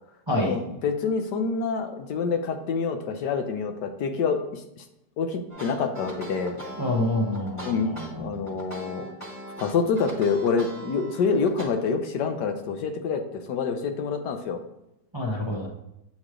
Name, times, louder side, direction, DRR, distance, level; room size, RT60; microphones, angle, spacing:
voice 1, 0.4-4.8 5.2-6.6 7.6-9.0 9.6-14.6, left 5 dB, 75° left, 6 dB, 1.3 m, -27 dB
sound 1, 5.5-11.6, equal, 10° left, 1.4 m, -40 dB
voice 2, 6.8-8.3 15.1-15.7, left 1 dB, 25° right, -3 dB, 0.6 m, -27 dB
7.4 x 3.1 x 4.9 m, 0.86 s
omnidirectional pair, 1.9 m